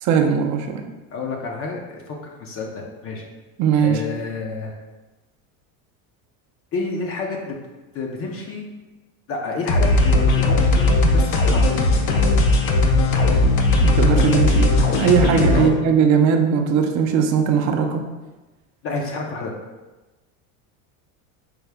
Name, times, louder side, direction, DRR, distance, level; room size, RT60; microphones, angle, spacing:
voice 1, 0.0-0.9 3.6-4.0 13.8-18.1, right 7 dB, 45° right, 5 dB, 0.5 m, -19 dB
voice 2, 1.1-2.0 2.4-3.2 3.8-4.7 6.7-7.6 7.9-8.7 9.3-11.7 15.5-15.7 18.8-19.5, left 3 dB, 35° left, 1 dB, 0.5 m, -29 dB
sound 1, 9.7-15.7, left 2 dB, 75° left, 0.7 m, -17 dB
4.7 x 2.1 x 3.3 m, 1.2 s
supercardioid pair, 125°, 42 cm